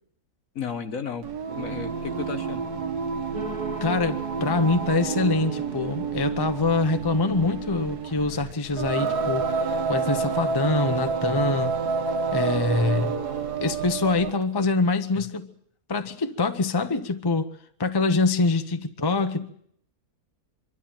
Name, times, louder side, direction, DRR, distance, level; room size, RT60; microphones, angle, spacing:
voice 1, 0.6-1.3 1.6-2.6 15.1-15.3, left 6 dB, 60° left, 8 dB, 1.7 m, -33 dB
Singing, 1.2-14.4, right 5 dB, 85° right, 1.9 m, -29 dB
sound 1, 3.3-9.2, right 1 dB, 30° right, 1.5 m, -41 dB
voice 2, 3.8-9.5 9.9-11.7 12.3-13.2 13.6-15.5 15.9-17.5 17.8-19.5, left 3 dB, 20° left, 8 dB, 0.7 m, -24 dB
24.0 x 13.0 x 8.9 m, 0.68 s
omnidirectional pair, 1.6 m